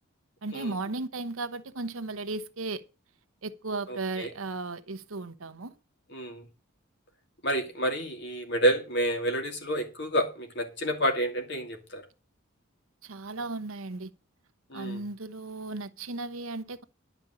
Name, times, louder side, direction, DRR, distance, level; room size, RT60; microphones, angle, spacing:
voice 1, 0.4-2.8 3.4-5.8 13.0-14.1 14.7-16.8, right 3 dB, 85° right, 1.0 m, -35 dB
voice 2, 3.9-4.3 6.1-6.5 7.4-12.0 14.7-15.0, right 1 dB, 55° left, 2.6 m, -29 dB
11.5 x 5.2 x 8.4 m
head